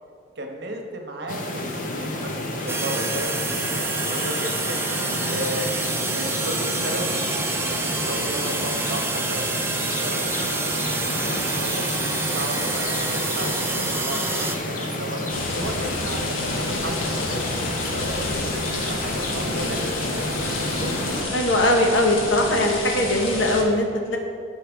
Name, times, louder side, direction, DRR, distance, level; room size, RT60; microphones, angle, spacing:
voice 1, 0.4-4.9 5.3-5.7 6.1-11.8 12.2-18.5 18.8-21.0, right 1 dB, 55° right, 2 dB, 1.0 m, -34 dB
sound 1, 1.3-21.2, left 1 dB, 40° left, 0.8 m, -30 dB
sound 2, 2.7-14.6, right 3 dB, 10° right, 0.4 m, -28 dB
sound 3, 15.3-23.6, left 2 dB, 85° left, 1.2 m, -30 dB
voice 2, 21.3-24.2, left 1 dB, 70° left, 2 dB, 1.0 m, -20 dB
12.0 x 4.6 x 3.5 m, 2.3 s
head